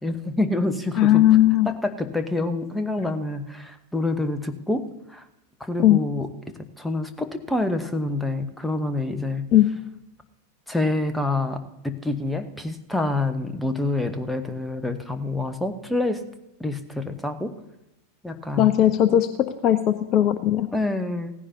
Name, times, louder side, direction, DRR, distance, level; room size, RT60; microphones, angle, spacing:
voice 1, 0.0-1.3 1.6-5.2 5.6-9.4 10.7-16.2 16.6-17.5 18.2-18.7 20.7-21.3, left 2 dB, 5° left, 7 dB, 1.1 m, -27 dB
voice 2, 1.0-1.7 5.8-6.0 9.5-9.7 18.6-19.3 19.6-20.7, left 12 dB, 35° left, 12 dB, 0.6 m, -17 dB
17.0 x 15.0 x 2.8 m, 0.87 s
figure-of-eight pair, 90°, 0 cm